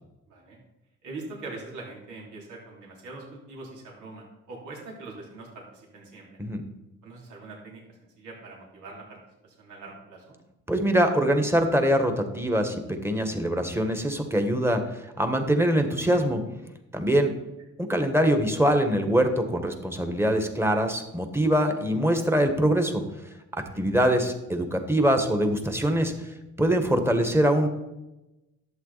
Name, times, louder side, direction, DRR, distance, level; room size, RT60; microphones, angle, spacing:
voice 1, 0.3-0.6 1.0-6.4 7.0-7.8 8.2-9.2 9.4-10.4 23.7-24.0, right 3 dB, 80° right, -2 dB, 3.4 m, -42 dB
voice 2, 10.7-16.4 16.9-17.3 17.8-23.0 23.8-26.1 26.6-27.7, equal, 10° right, 6 dB, 1.6 m, -23 dB
11.5 x 8.3 x 4.2 m, 0.97 s
cardioid pair, 90°, 30 cm